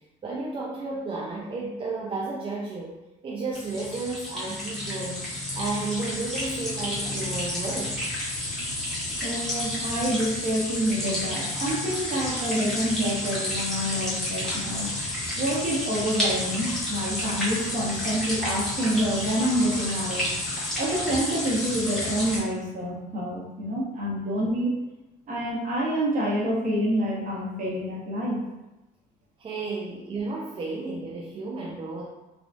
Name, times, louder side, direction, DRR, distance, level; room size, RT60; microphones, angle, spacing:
voice 1, 0.2-2.9 3.2-8.0 29.4-32.0, right 3 dB, 30° right, -4 dB, 0.4 m, -32 dB
sound 1, 3.5-22.4, left 1 dB, ahead, 1.1 m, -30 dB
voice 2, 9.2-14.9 15.4-20.2 20.8-24.7 25.3-28.4, equal, 50° right, -4 dB, 1.0 m, -27 dB
3.5 x 2.3 x 2.5 m, 1.0 s
cardioid pair, 110°, 17 cm